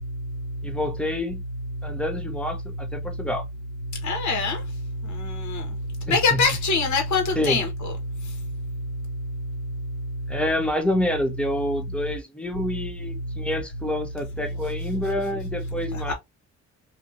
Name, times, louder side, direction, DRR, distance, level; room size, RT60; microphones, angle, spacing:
voice 1, 0.6-1.4 1.8-3.4 6.1-6.4 7.4-7.6 10.3-16.1, left 1 dB, 5° left, 0.8 m, -27 dB
voice 2, 4.0-4.6 5.1-5.7 6.1-7.9 15.9-16.1, left 4 dB, 70° left, 1.3 m, -24 dB
2.8 x 2.7 x 2.6 m
cardioid pair, 90°, 30 cm